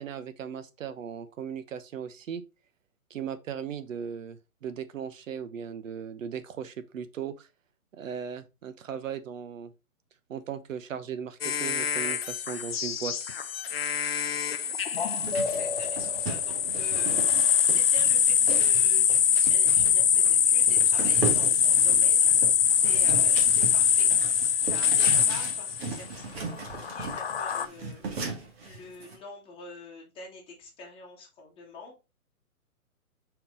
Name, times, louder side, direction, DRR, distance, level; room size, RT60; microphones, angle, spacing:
voice 1, 0.0-2.4 3.1-7.5 7.9-9.7 10.3-13.1, right 8 dB, 60° right, 1.0 m, -37 dB
sound 1, 11.4-26.0 26.6-27.7, left 8 dB, 45° left, 0.4 m, -24 dB
voice 2, 14.2-14.7 15.5-24.1 24.6-32.0, left 3 dB, 10° left, 1.7 m, -47 dB
sound 2, 15.2-29.2, right 4 dB, 45° right, 1.9 m, -37 dB
5.7 x 4.6 x 3.9 m
hypercardioid pair, 155°, 44 cm